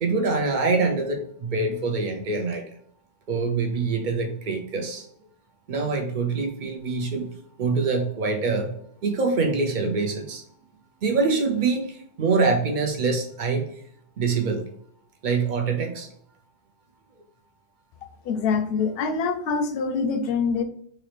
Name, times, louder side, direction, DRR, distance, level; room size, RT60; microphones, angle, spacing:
voice 1, 0.0-2.6 3.3-5.1 5.7-7.3 7.6-8.7 9.0-10.4 11.0-13.7 14.2-14.7 15.2-16.1, right 4 dB, 55° right, 3 dB, 0.6 m, -25 dB
voice 2, 18.2-20.6, left 5 dB, 65° left, 7 dB, 0.7 m, -25 dB
3.9 x 2.8 x 3.2 m, 0.68 s
omnidirectional pair, 1.2 m